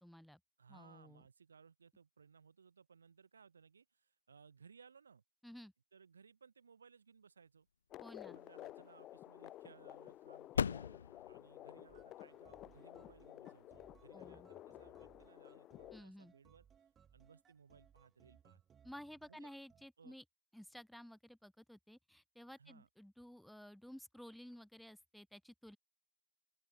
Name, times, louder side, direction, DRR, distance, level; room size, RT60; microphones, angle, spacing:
voice 1, 0.0-0.4 0.7-1.2 5.4-5.7 8.0-8.4 14.1-14.5 15.9-16.3 18.8-20.2 20.5-25.8, equal, ahead, 0.6 m, -54 dB
voice 2, 0.6-5.2 5.9-7.7 8.2-10.9 11.3-16.7 17.1-18.6 19.3-19.5 20.0-20.2 22.6-22.9, right 6 dB, 80° right, 7.1 m, -63 dB
sound 1, 7.9-16.0, left 14 dB, 25° left, 1.3 m, -53 dB
sound 2, 8.0-15.2, left 7 dB, 75° left, 0.8 m, -44 dB
sound 3, 11.9-19.9, right 8 dB, 15° right, 2.6 m, -68 dB
open air
hypercardioid pair, 130°, 0 cm